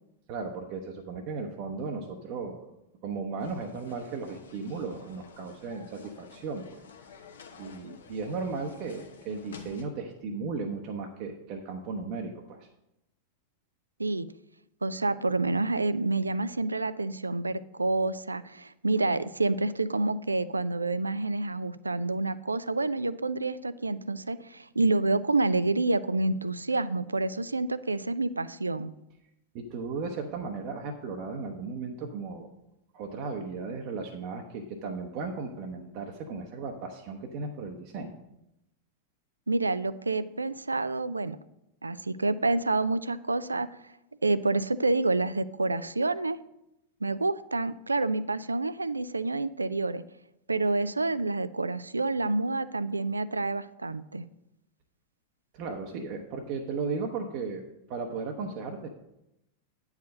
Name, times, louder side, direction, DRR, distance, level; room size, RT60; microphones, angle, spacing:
voice 1, 0.3-2.7 3.0-6.8 7.6-12.7 29.5-32.5 32.9-38.2 55.5-58.9, right 4 dB, 45° right, 2 dB, 0.8 m, -36 dB
sound 1, 3.4-9.9, left 6 dB, 65° left, 0.9 m, -51 dB
voice 2, 14.8-28.9 39.5-41.4 41.8-43.7 44.2-46.4 47.0-50.0 50.5-54.3, right 2 dB, 80° right, 16 dB, 0.3 m, -28 dB
9.2 x 4.8 x 6.4 m, 0.87 s
figure-of-eight pair, 90°, 0 cm